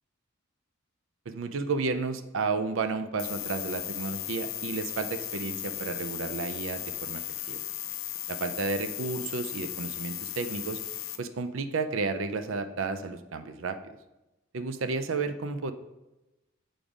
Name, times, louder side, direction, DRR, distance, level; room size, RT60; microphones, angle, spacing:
voice 1, 1.3-7.6 8.3-10.8 11.2-13.9 14.5-15.7, right 4 dB, 65° right, 10 dB, 0.5 m, -32 dB
sound 1, 3.2-11.2, left 14 dB, 70° left, 0.5 m, -36 dB
7.0 x 3.8 x 4.9 m, 1.0 s
head